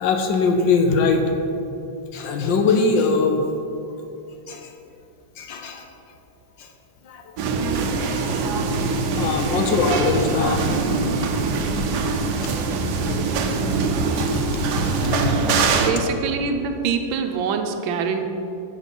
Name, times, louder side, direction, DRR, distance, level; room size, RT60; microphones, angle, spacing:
voice 1, 0.0-1.3 2.1-3.4 4.5-4.7 5.4-5.8 7.1-7.2 9.1-10.7 12.4-12.5 15.2-15.3, left 4 dB, 70° left, 4 dB, 1.3 m, -21 dB
sound 1, 7.4-15.9, right 4 dB, 65° right, 1.1 m, -23 dB
voice 2, 15.8-18.2, right 5 dB, 80° right, 6 dB, 1.4 m, -24 dB
7.2 x 6.0 x 5.6 m, 2.7 s
omnidirectional pair, 2.2 m